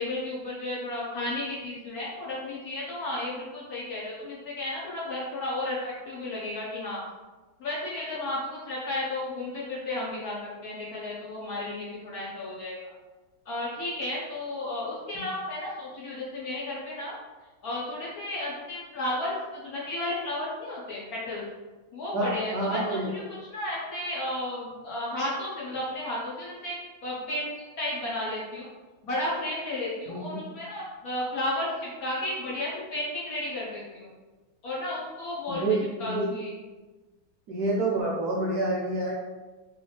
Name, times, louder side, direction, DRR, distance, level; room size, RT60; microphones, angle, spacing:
voice 1, 0.0-7.0 7.6-12.8 13.5-17.1 17.6-21.4 21.9-27.5 27.8-28.7 29.0-34.1 34.6-35.6 36.0-36.6, left 1 dB, 65° left, -6 dB, 0.9 m, -33 dB
voice 2, 22.1-23.1 30.1-30.2 35.5-36.3 37.5-39.1, right 2 dB, 75° right, -4 dB, 0.9 m, -28 dB
3.1 x 2.8 x 3.1 m, 1.2 s
omnidirectional pair, 2.1 m